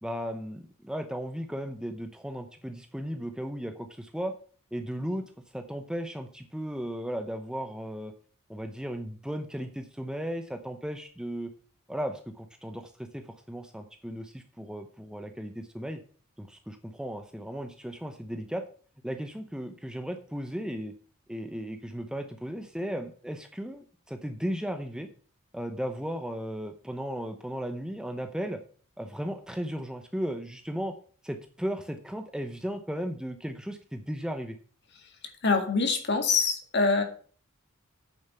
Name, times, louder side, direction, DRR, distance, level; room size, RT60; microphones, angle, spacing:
voice 1, 0.0-4.3 4.7-8.1 8.5-11.5 11.9-16.0 16.4-18.6 19.0-20.9 21.3-25.1 25.5-28.6 29.0-30.9 31.2-34.6, equal, 5° right, 6 dB, 0.7 m, -35 dB
voice 2, 35.4-37.0, left 4 dB, 50° left, 6 dB, 2.0 m, -24 dB
9.0 x 7.2 x 5.5 m, 0.42 s
head